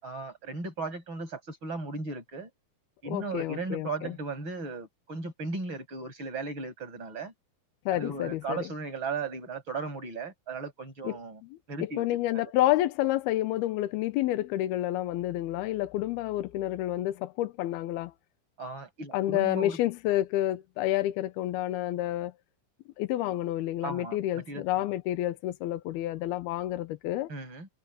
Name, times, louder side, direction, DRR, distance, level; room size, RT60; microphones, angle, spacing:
voice 1, 0.0-2.5 3.0-7.3 7.9-11.4 11.7-12.0 12.3-12.4 18.6-19.8 23.8-24.8 27.3-27.7, right 3 dB, 30° right, 8.2 m, -36 dB
voice 2, 3.1-4.2 7.9-8.6 11.0-11.2 11.5-11.6 12.0-18.1 19.1-22.3 23.0-27.3, left 14 dB, 90° left, 2.9 m, -29 dB
omnidirectional pair, 4.3 m